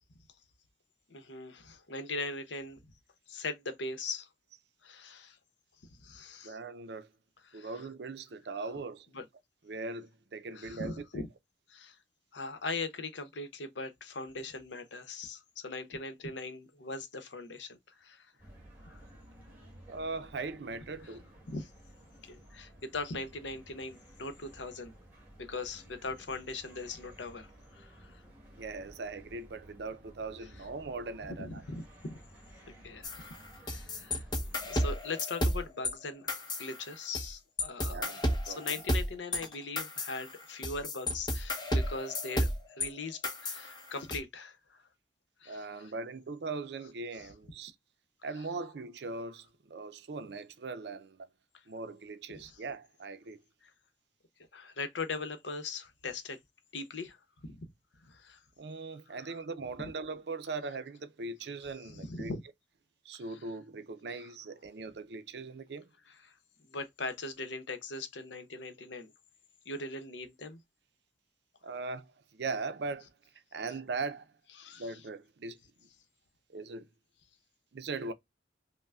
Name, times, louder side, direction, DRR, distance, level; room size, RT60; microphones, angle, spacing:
voice 1, 1.1-2.8 3.3-4.3 4.8-5.4 6.0-6.6 7.5-7.7 9.1-9.2 10.5-11.2 11.7-12.0 12.3-18.3 18.9-19.0 21.5-21.7 22.2-24.9 25.4-27.5 27.7-28.2 31.4-32.2 32.8-33.3 33.6-34.2 34.7-38.2 38.4-42.5 42.8-44.6 45.4-45.7 47.1-47.3 52.4-52.6 54.5-56.4 56.7-57.2 58.1-58.4 59.3-59.4 61.9-62.4 63.1-63.2 64.2-64.3 66.2-66.3 66.7-69.1 69.7-70.6 74.6-74.9, left 3 dB, 90° left, 0.8 m, -40 dB
voice 2, 6.4-7.1 7.5-9.1 9.7-11.3 19.9-21.2 28.5-31.6 37.8-38.7 45.5-47.7 48.2-51.3 51.7-53.4 58.6-62.3 63.0-65.9 71.6-73.1 73.5-74.3 74.8-75.6 76.5-76.9 77.7-78.1, right 3 dB, 65° right, 0.5 m, -40 dB
sound 1, 18.4-34.8, right 1 dB, 10° right, 1.8 m, -55 dB
sound 2, 33.0-35.9 36.3-37.3 37.6-42.9 43.2-44.2, left 1 dB, 25° left, 0.8 m, -32 dB
5.4 x 2.1 x 2.3 m
head